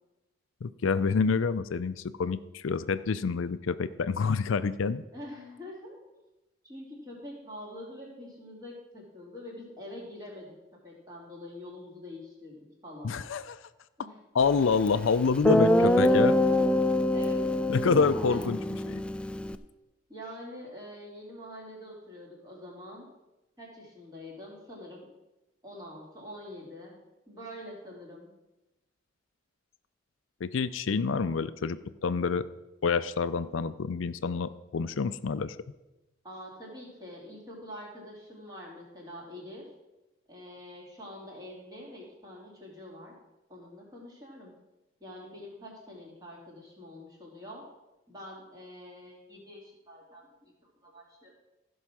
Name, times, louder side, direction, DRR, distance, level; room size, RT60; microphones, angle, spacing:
voice 1, 0.6-5.0 13.0-13.6 14.3-16.3 17.7-18.6 18.9-19.0 30.4-32.4 32.8-35.6, left 5 dB, 75° left, 13 dB, 0.5 m, -27 dB
voice 2, 5.1-6.0 6.6-10.5 10.8-13.2 14.0-14.2 14.9-15.0 15.8-16.5 17.1-17.5 18.3-18.4 20.1-23.1 23.6-25.1 25.6-27.0 27.3-28.3 36.2-39.7 40.3-43.1 43.5-44.5 45.0-47.6 48.1-50.5 50.8-51.3, left 1 dB, 20° right, -3 dB, 3.2 m, -45 dB
Guitar, 14.9-15.0 15.4-19.6, left 1 dB, 5° left, 0.3 m, -24 dB
15.0 x 5.5 x 6.2 m, 1.0 s
head